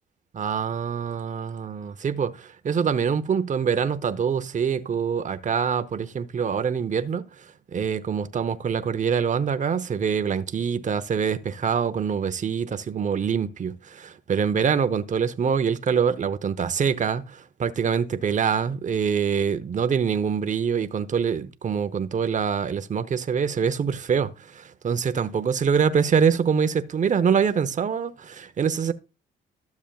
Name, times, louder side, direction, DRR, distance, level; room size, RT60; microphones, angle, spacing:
voice 1, 0.4-7.3 7.7-28.9, right 7 dB, 40° right, 0.8 m, -25 dB
12.5 x 7.1 x 2.4 m
cardioid pair, 90°, 20 cm